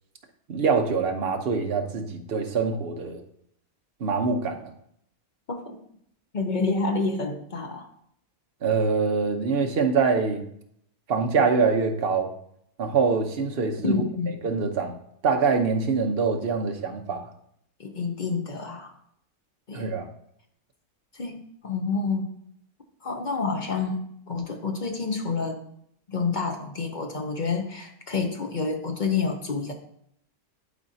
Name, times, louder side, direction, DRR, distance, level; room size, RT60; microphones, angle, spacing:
voice 1, 0.5-3.2 4.0-4.7 8.6-10.4 11.1-12.3 12.8-13.9 14.4-15.0 15.2-17.3 19.7-20.1, right 5 dB, 45° right, 4 dB, 0.9 m, -24 dB
voice 2, 5.5-5.8 6.3-7.9 13.8-14.3 17.8-19.0 19.7-19.9 21.1-22.2 23.0-25.6 26.1-29.7, left 4 dB, 40° left, 4 dB, 0.7 m, -28 dB
11.5 x 4.4 x 2.7 m, 0.70 s
omnidirectional pair, 1.6 m